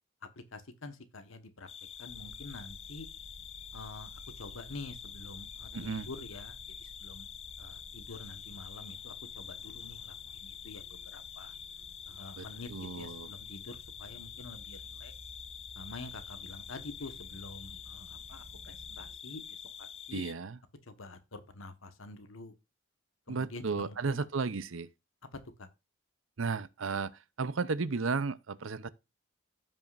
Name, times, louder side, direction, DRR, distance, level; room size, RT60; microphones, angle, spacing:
voice 1, 0.4-1.7 2.0-3.1 3.7-4.1 4.4-7.3 7.6-10.1 10.4-11.5 12.1-15.1 15.7-19.4 19.8-20.2 20.9-22.5 23.3-24.3 25.3-25.7, left 2 dB, 80° left, 1.4 m, -47 dB
sound 1, 1.7-20.3, left 9 dB, 30° left, 0.4 m, -47 dB
sound 2, 2.1-19.2, equal, 50° right, 1.2 m, -54 dB
voice 2, 5.7-6.1 12.4-13.3 20.1-20.6 23.3-24.9 26.4-28.9, right 4 dB, 70° right, 0.6 m, -34 dB
15.5 x 5.6 x 2.5 m
head